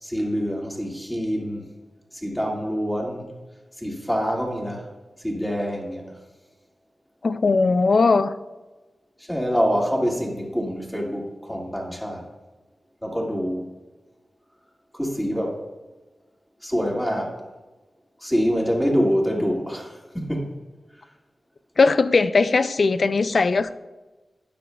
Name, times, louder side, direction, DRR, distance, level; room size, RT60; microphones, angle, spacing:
voice 1, 0.0-1.6 2.1-3.3 3.8-4.9 5.2-6.1 9.3-12.3 13.0-13.7 14.9-15.6 16.6-17.3 18.2-20.5, equal, 5° left, -1 dB, 1.9 m, -25 dB
voice 2, 7.2-8.3 21.8-23.7, left 4 dB, 60° left, 12 dB, 0.4 m, -19 dB
12.5 x 9.3 x 2.3 m, 1.2 s
wide cardioid pair, 85°, 0 cm